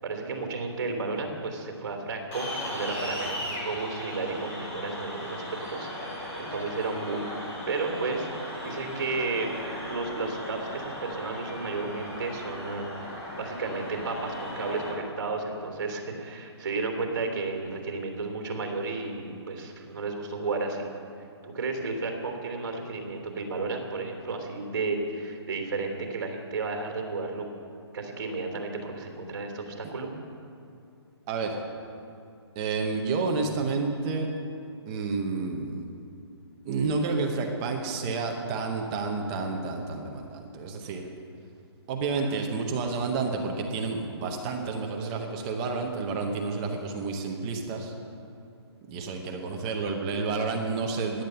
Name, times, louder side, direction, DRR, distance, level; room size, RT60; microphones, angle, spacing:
voice 1, 0.0-5.4 5.7-9.5 9.8-12.9 13.3-20.9 21.4-27.5 27.9-30.1, right 3 dB, 45° right, 3 dB, 3.2 m, -33 dB
sound 1, 2.3-14.9, left 1 dB, 15° left, 2.7 m, -37 dB
voice 2, 31.3-31.6 32.6-34.3 34.9-35.8 36.6-41.1 41.9-47.9 48.9-51.2, right 4 dB, 10° right, 2 dB, 0.7 m, -30 dB
16.5 x 11.0 x 6.8 m, 2.6 s
hypercardioid pair, 175°, 14 cm